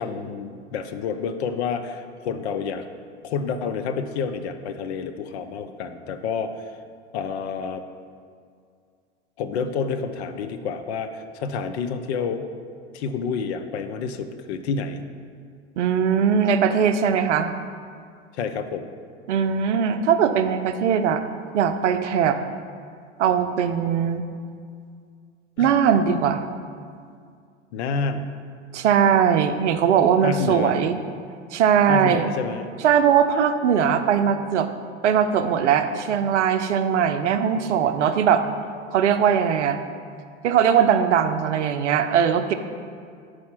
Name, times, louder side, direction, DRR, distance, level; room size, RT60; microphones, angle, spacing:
voice 1, 0.0-2.8 3.2-6.6 7.1-7.8 9.4-12.5 12.9-15.0 18.3-18.9 25.6-25.7 27.7-28.3 30.2-30.7 31.9-32.7, left 5 dB, 65° left, 9 dB, 0.6 m, -29 dB
voice 2, 15.8-17.5 19.3-21.2 21.5-22.4 23.2-24.2 25.6-26.4 28.7-31.0 31.5-32.2 32.8-34.7 35.0-38.4 38.9-39.8 40.4-42.5, right 8 dB, 80° right, 9 dB, 0.5 m, -20 dB
4.8 x 4.2 x 5.8 m, 2.2 s
hypercardioid pair, 85°, 35 cm